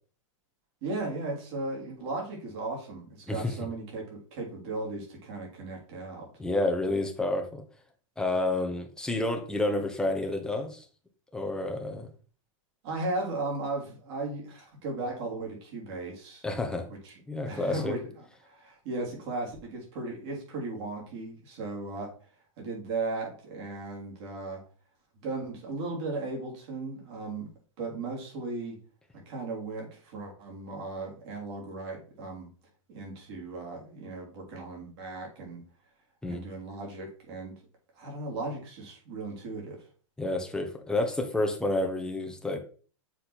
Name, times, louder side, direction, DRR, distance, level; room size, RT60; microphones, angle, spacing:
voice 1, 0.8-6.3 12.8-16.4 17.0-22.1 22.6-24.6 25.1-27.5 27.8-28.8 29.3-32.5 32.9-35.6 36.3-37.5 37.9-39.9, right 2 dB, 55° right, -1 dB, 3.7 m, -36 dB
voice 2, 6.4-7.6 8.2-10.8 11.3-12.1 16.4-16.9 17.3-17.9 36.2-36.4 40.2-42.6, left 2 dB, 5° left, 3 dB, 1.4 m, -29 dB
7.1 x 4.1 x 4.5 m, 0.41 s
hypercardioid pair, 110°, 17 cm